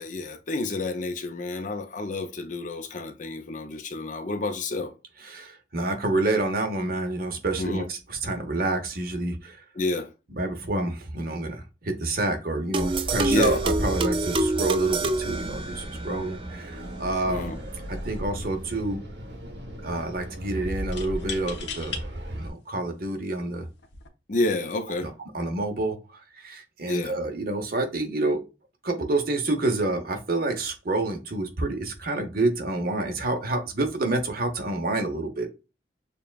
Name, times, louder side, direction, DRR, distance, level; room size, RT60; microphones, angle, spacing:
voice 1, 0.0-4.9 7.6-7.9 9.8-10.1 13.3-13.6 17.3-17.6 24.3-25.1 26.8-27.2, left 2 dB, 45° left, 0.6 m, -29 dB
voice 2, 5.2-9.6 10.3-17.5 17.9-19.0 19.8-22.0 22.3-23.7 25.0-28.4 28.8-35.5, right 2 dB, 55° right, 0.9 m, -28 dB
sound 1, 12.7-16.2, right 2 dB, 30° right, 0.3 m, -26 dB
sound 2, 12.8-22.5, right 1 dB, 70° right, 1.2 m, -36 dB
sound 3, 17.8-18.0 18.3-19.0 20.9-22.0 22.8-22.9 23.8-24.1, left 6 dB, 90° left, 0.9 m, -37 dB
6.8 x 2.3 x 2.4 m
head